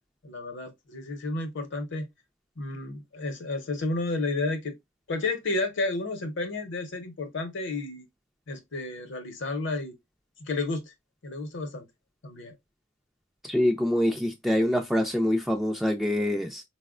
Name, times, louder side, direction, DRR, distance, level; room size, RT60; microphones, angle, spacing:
voice 1, 0.2-2.1 2.6-4.7 5.1-8.0 8.5-9.9 10.4-10.9 11.2-11.9 12.2-12.6, left 2 dB, 60° left, 0.7 m, -31 dB
voice 2, 13.4-16.6, left 1 dB, ahead, 0.3 m, -25 dB
4.1 x 2.1 x 2.4 m
head